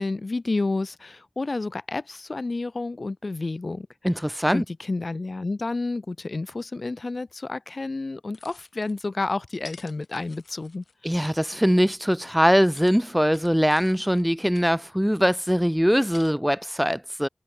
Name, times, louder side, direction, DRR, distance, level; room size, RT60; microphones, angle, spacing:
voice 1, 0.0-3.9 4.5-10.8, left 3 dB, 55° left, 2.8 m, -30 dB
voice 2, 4.0-4.6 11.0-17.3, equal, ahead, 0.6 m, -22 dB
sound 1, 7.3-7.4 8.3-9.1 9.5-11.4 12.1-12.2 12.6-14.7 15.2-16.3, left 4 dB, 80° left, 4.7 m, -50 dB
wide cardioid pair, 70°, 0 cm